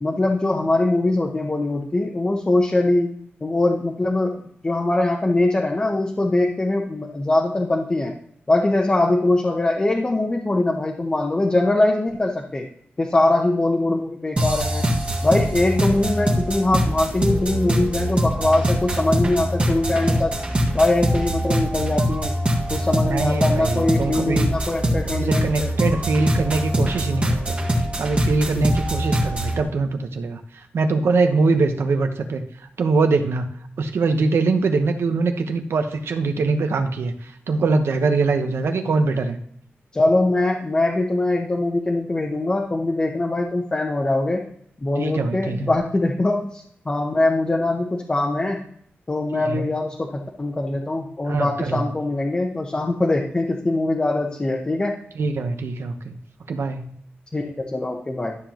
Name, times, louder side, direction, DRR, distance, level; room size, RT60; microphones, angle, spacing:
voice 1, 0.0-3.1 3.4-8.1 8.5-12.7 13.0-14.9 15.2-20.3 20.7-22.4 22.7-25.7 28.6-28.7 39.9-44.4 44.8-48.6 49.1-55.0 57.3-58.4, left 2 dB, 25° left, 0 dB, 0.9 m, -22 dB
sound 1, 14.4-29.6, equal, 30° right, 1.5 m, -23 dB
voice 2, 23.1-24.5 25.1-27.6 28.0-30.4 30.7-32.4 32.8-39.4 45.0-45.7 49.5-49.6 51.3-51.8 55.2-56.2 56.5-57.0, right 3 dB, 85° right, 7 dB, 1.1 m, -22 dB
12.5 x 7.2 x 3.0 m, 0.66 s
wide cardioid pair, 175°, 4 cm